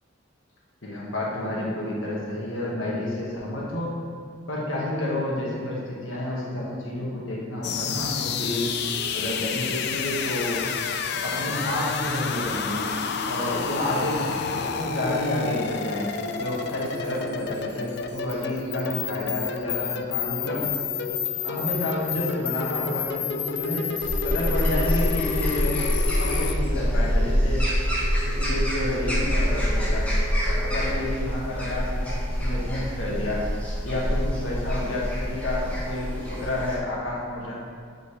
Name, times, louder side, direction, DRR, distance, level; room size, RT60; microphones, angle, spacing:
voice 1, 0.8-3.9 4.5-8.7 9.1-10.7 11.2-12.8 13.3-20.7 21.4-25.8 26.2-27.6 28.2-30.1 30.4-33.5 33.8-37.5, left 1 dB, 85° left, -5 dB, 1.6 m, -30 dB
sound 1, 7.6-26.5, left 7 dB, 55° left, 0.4 m, -30 dB
sound 2, 11.6-31.1, left 1 dB, 30° left, 1.4 m, -40 dB
Saturday morning birds, 24.0-36.8, equal, 5° left, 1.2 m, -26 dB
8.0 x 5.3 x 3.3 m, 2.2 s
head